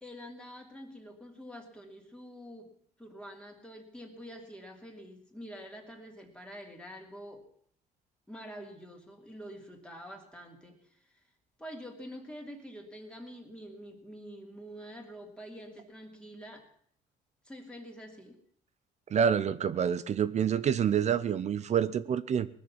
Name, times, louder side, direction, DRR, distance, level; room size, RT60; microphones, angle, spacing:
voice 1, 0.0-7.5 8.3-11.2 11.6-16.7 17.4-18.4, equal, 5° left, 1 dB, 2.8 m, -47 dB
voice 2, 19.1-22.5, right 8 dB, 40° right, 15 dB, 0.6 m, -27 dB
20.0 x 6.7 x 7.4 m, 0.63 s
cardioid pair, 110°, 17 cm